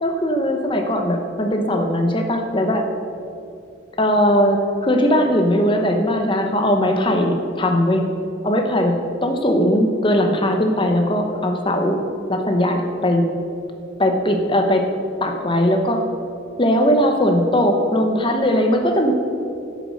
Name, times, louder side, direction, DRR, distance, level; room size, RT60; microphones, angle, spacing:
voice 1, 0.0-2.8 4.0-8.0 8.4-9.0 9.2-12.0 12.3-13.3 14.0-14.8 15.2-16.0 16.6-19.1, equal, 25° left, 3 dB, 1.0 m, -19 dB
10.5 x 8.3 x 6.5 m, 2.6 s
head